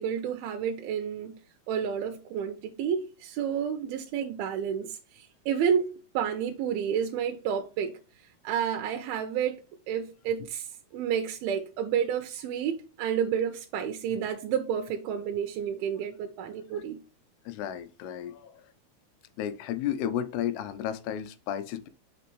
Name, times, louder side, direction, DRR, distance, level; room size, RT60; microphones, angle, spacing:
voice 1, 0.0-1.4 1.7-7.9 8.4-9.6 9.9-17.0, right 8 dB, 85° right, 2.5 m, -30 dB
voice 2, 17.5-18.6 19.4-21.9, left 10 dB, 85° left, 2.7 m, -33 dB
6.1 x 5.9 x 3.0 m
omnidirectional pair, 4.6 m